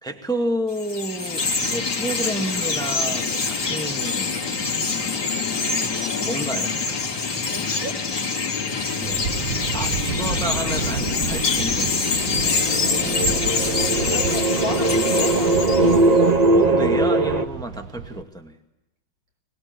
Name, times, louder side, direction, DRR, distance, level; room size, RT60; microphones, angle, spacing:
voice 1, 0.0-4.4 6.2-6.7 9.0-9.2 9.7-12.0 16.5-18.6, right 1 dB, ahead, 4 dB, 2.0 m, -30 dB
Chirp tweet, 0.7-16.3, left 4 dB, 55° left, 3.9 m, -25 dB
voice 2, 7.5-8.0 13.6-16.0, equal, 75° right, 4 dB, 5.4 m, -34 dB
sound 1, 9.0-18.2, right 6 dB, 55° right, 1.5 m, -32 dB
sound 2, 12.3-17.5, right 2 dB, 25° right, 1.3 m, -20 dB
25.5 x 21.0 x 9.8 m, 0.90 s
omnidirectional pair, 2.2 m